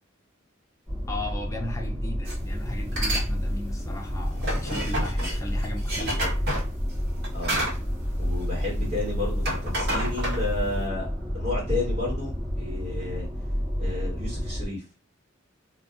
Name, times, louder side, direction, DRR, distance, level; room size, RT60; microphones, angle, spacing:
sound 1, 0.9-14.7, equal, ahead, 0.8 m, -29 dB
voice 1, 1.1-6.3, left 1 dB, 15° left, 0.4 m, -36 dB
sound 2, 2.3-2.4 2.8-3.3 3.6-8.9 9.2-10.8, right 1 dB, 50° right, 1.1 m, -31 dB
voice 2, 7.3-7.6 8.2-13.3 13.8-14.8, left 2 dB, 35° right, 1.4 m, -32 dB
2.4 x 2.1 x 3.6 m
head